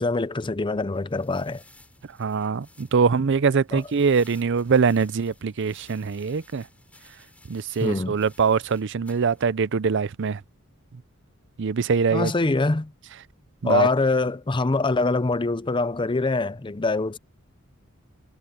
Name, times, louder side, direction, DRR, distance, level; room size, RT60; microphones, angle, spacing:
voice 1, 0.0-1.6 3.7-3.8 7.8-8.2 12.1-12.9 13.6-17.2, left 3 dB, 25° left, 0.6 m, -24 dB
sound 1, 0.9-9.4, left 2 dB, 5° left, 4.3 m, -56 dB
voice 2, 2.2-6.7 7.5-10.4 11.6-12.3 13.6-13.9, right 5 dB, 60° right, 0.5 m, -23 dB
head